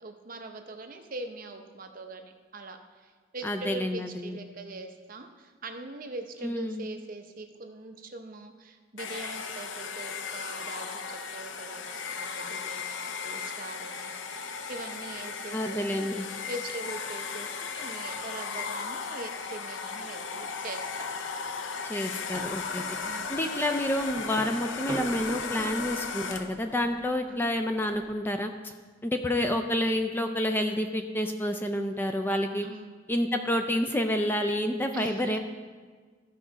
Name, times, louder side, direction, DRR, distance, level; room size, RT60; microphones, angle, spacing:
voice 1, 0.0-16.1 16.5-21.1 23.0-23.5 27.3-27.5 32.6-33.0 34.9-35.4, right 2 dB, 45° right, 5 dB, 0.7 m, -42 dB
voice 2, 3.4-4.4 6.4-6.9 15.5-16.3 21.9-22.8 23.3-28.7 29.0-32.7 33.1-35.4, left 1 dB, 10° left, 5 dB, 0.4 m, -29 dB
Domestic sounds home sounds, 9.0-26.7, left 5 dB, 80° left, 0.6 m, -36 dB
sound 1, 14.6-16.2 16.6-20.6 20.9-21.6 22.0-22.2 22.4-22.5 22.8-24.9, right 2 dB, 55° left, 1.6 m, -51 dB
sound 2, 22.2-28.1, right 2 dB, 20° right, 1.6 m, -43 dB
14.5 x 5.1 x 4.0 m, 1.5 s
head